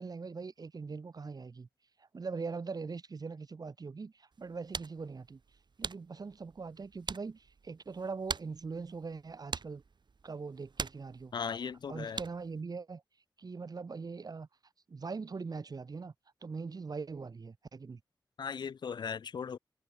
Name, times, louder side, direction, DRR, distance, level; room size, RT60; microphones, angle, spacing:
voice 1, 0.0-1.7 2.0-5.4 5.8-9.8 10.2-11.3 11.9-13.0 13.4-14.5 14.9-16.1 16.4-18.0, right 4 dB, 55° right, 0.9 m, -41 dB
sound 1, 4.3-12.6, right 5 dB, 70° right, 3.3 m, -44 dB
voice 2, 11.3-12.2 18.4-19.6, left 6 dB, 70° left, 0.4 m, -37 dB
wide cardioid pair, 65°, 8 cm